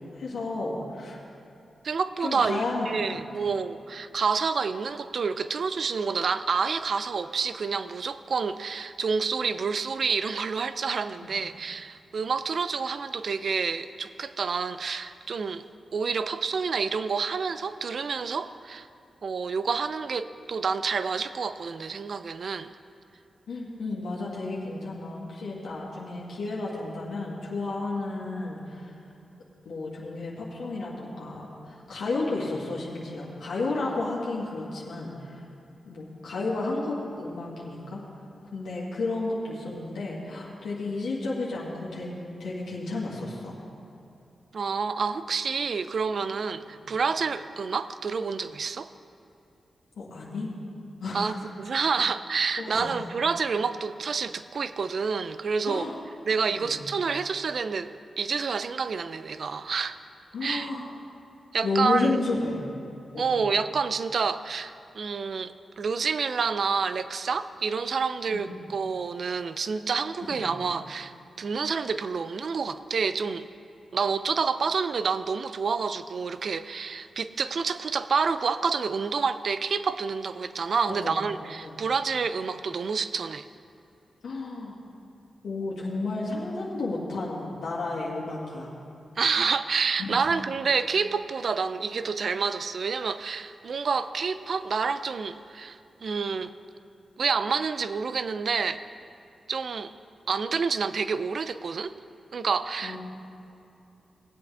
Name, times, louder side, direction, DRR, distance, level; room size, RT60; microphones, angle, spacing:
voice 1, 0.2-1.2 2.2-3.1 11.2-11.3 23.5-28.9 29.7-35.4 35.8-38.0 38.5-42.1 42.4-43.6 46.7-46.8 50.0-50.5 51.0-51.3 52.6-52.9 55.7-55.9 56.5-56.8 60.3-60.8 61.6-62.6 63.1-63.3 68.3-68.5 70.3-70.5 80.9-81.2 81.6-81.8 84.2-84.8 85.4-88.7 90.0-90.2 102.8-103.0, left 3 dB, 80° left, -5 dB, 1.9 m, -32 dB
voice 2, 1.8-15.6 15.9-18.9 19.2-22.7 44.5-48.9 51.1-55.9 56.3-57.9 58.2-60.0 60.4-60.7 61.5-62.1 63.2-73.5 73.9-83.5 89.2-96.5 97.2-98.8 99.5-99.9 100.3-101.9 102.3-103.0, right 5 dB, 65° right, 13 dB, 0.4 m, -28 dB
18.5 x 8.1 x 3.5 m, 2.7 s
cardioid pair, 50°, 0 cm